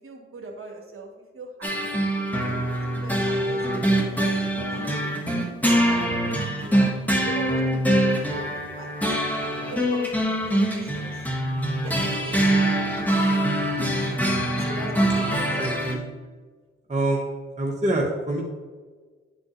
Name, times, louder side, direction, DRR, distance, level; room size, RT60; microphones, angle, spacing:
voice 1, 0.0-1.7 2.5-4.0 4.3-4.8 5.2-5.5 5.9-8.9 9.7-11.2 11.6-12.7 14.6-15.9, right 3 dB, 40° right, 1 dB, 1.7 m, -41 dB
sound 1, 1.6-15.9, right 1 dB, 5° left, 1.6 m, -24 dB
voice 2, 15.5-16.0 16.9-17.3 17.6-18.4, right 1 dB, 20° right, -2 dB, 1.3 m, -26 dB
10.0 x 4.1 x 3.2 m, 1.5 s
hypercardioid pair, 40°, 33 cm